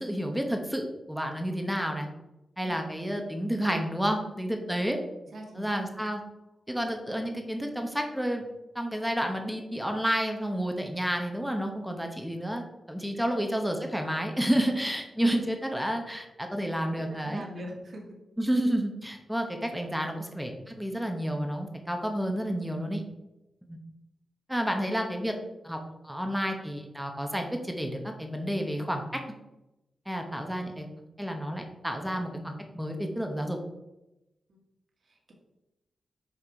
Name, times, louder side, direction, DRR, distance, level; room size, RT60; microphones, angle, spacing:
voice 1, 0.0-2.1 2.6-5.0 5.5-6.2 6.7-8.5 8.7-17.4 18.4-23.0 23.7-23.8 24.5-25.3 25.6-29.1 30.1-30.9 31.2-33.6, equal, ahead, 3 dB, 0.9 m, -30 dB
voice 2, 5.3-5.8 13.1-13.3 17.1-18.2 34.5-34.6 35.1-35.3, equal, 50° right, -1 dB, 1.9 m, -42 dB
6.1 x 4.9 x 4.7 m, 0.96 s
wide cardioid pair, 125°, 0 cm